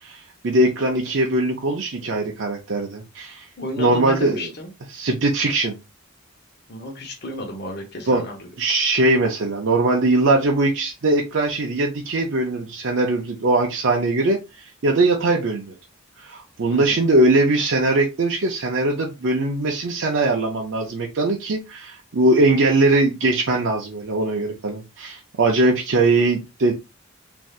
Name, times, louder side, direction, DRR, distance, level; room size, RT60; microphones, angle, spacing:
voice 1, 0.0-3.5 3.8-4.5 4.9-5.7 8.1-8.2 8.6-15.8 16.2-26.7, right 2 dB, 60° right, 0 dB, 0.5 m, -21 dB
voice 2, 3.6-4.7 6.7-8.5 16.7-17.0, left 1 dB, 50° left, 1 dB, 0.8 m, -32 dB
3.3 x 2.6 x 2.4 m, 0.25 s
head